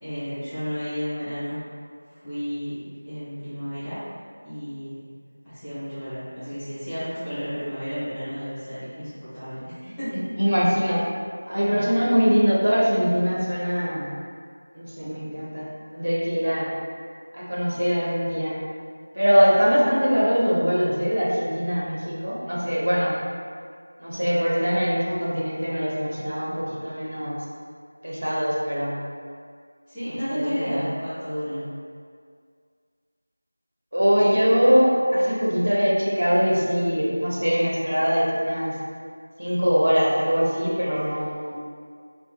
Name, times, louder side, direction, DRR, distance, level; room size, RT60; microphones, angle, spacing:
voice 1, 0.0-1.6 2.1-2.8 3.0-4.0 4.4-5.0 5.4-10.1 29.9-31.6, equal, 5° left, -23 dB, 0.5 m, -32 dB
voice 2, 10.4-11.0 11.5-14.1 14.8-16.7 17.3-18.6 19.1-23.1 24.0-27.4 28.0-29.0 30.3-30.8 33.9-38.7 39.4-41.6, equal, 70° right, -6 dB, 0.7 m, -22 dB
2.6 x 2.2 x 2.4 m, 2.1 s
figure-of-eight pair, 175°, 0 cm